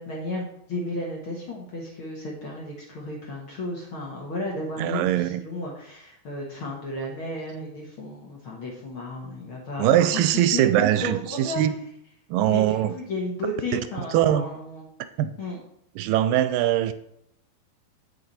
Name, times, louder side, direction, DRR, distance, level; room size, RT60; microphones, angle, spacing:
voice 1, 0.0-11.6 12.4-14.9 15.4-15.6, left 2 dB, 50° left, -2 dB, 1.7 m, -33 dB
voice 2, 4.8-5.4 9.8-11.8 12.3-12.9 13.7-13.8 14.1-14.5 15.2-15.4 16.0-16.9, right 12 dB, 80° right, 11 dB, 2.1 m, -22 dB
8.8 x 6.7 x 4.2 m, 0.72 s
omnidirectional pair, 4.0 m